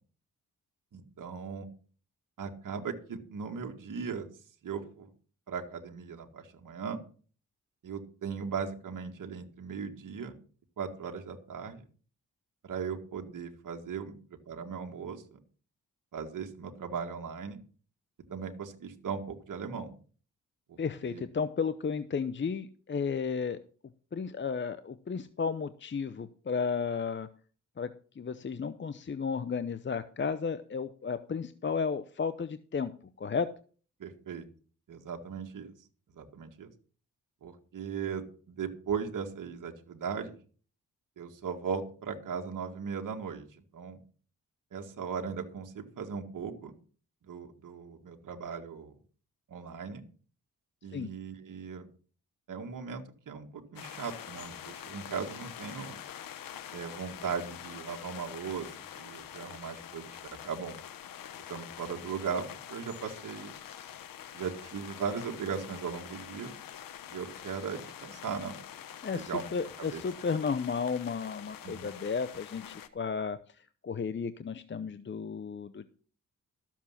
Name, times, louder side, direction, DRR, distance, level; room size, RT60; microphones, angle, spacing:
voice 1, 0.9-1.7 2.4-4.3 4.6-5.1 5.5-7.0 7.8-10.4 10.8-11.8 12.6-14.1 14.5-15.4 16.1-17.6 18.3-19.9 20.7-21.2 34.0-34.5 34.9-35.7 36.1-36.7 37.4-40.4 41.2-44.0 44.7-46.7 47.2-48.9 49.5-50.0 50.8-51.9 52.5-56.0 56.7-60.2 60.4-60.8 61.5-63.5 64.3-66.6 67.1-68.6 69.1-69.4 69.8-70.0 71.6-71.9, right 6 dB, 70° right, 4 dB, 2.0 m, -38 dB
voice 2, 20.8-23.6 24.1-27.3 27.8-32.9 33.2-33.5 50.9-51.1 69.0-73.4 73.8-75.9, left 5 dB, 35° left, 12 dB, 0.7 m, -33 dB
sound 1, 53.8-72.9, left 10 dB, 90° left, 1.1 m, -46 dB
13.0 x 7.4 x 5.7 m, 0.41 s
cardioid pair, 70°, 33 cm